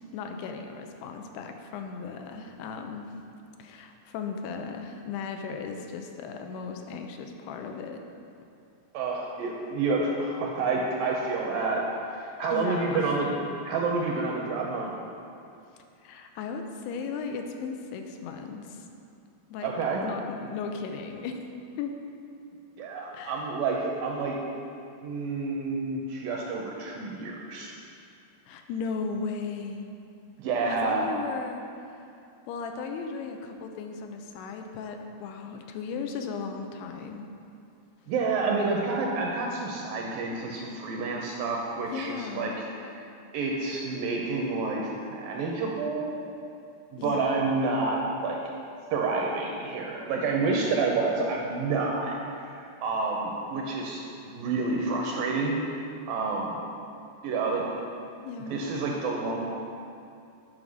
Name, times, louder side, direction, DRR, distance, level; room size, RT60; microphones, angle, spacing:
voice 1, 0.1-3.1 3.6-8.0 12.5-13.2 16.0-18.9 19.5-19.7 20.0-21.4 21.8-22.0 23.1-23.6 28.5-30.0 30.7-32.0 32.5-37.2 41.9-42.7 47.0-47.3 58.2-58.7, left 5 dB, 90° left, 5 dB, 2.7 m, -36 dB
voice 2, 8.9-11.8 12.1-13.3 13.6-14.9 19.6-20.0 22.8-24.4 25.0-27.7 30.4-31.1 38.1-42.5 42.8-42.9 43.3-46.3 46.9-48.4 48.9-52.2 52.5-55.8 56.1-56.6 57.2-57.6 58.5-59.4, right 3 dB, 80° right, -1 dB, 2.1 m, -29 dB
9.5 x 5.1 x 6.3 m, 2.5 s
omnidirectional pair, 4.7 m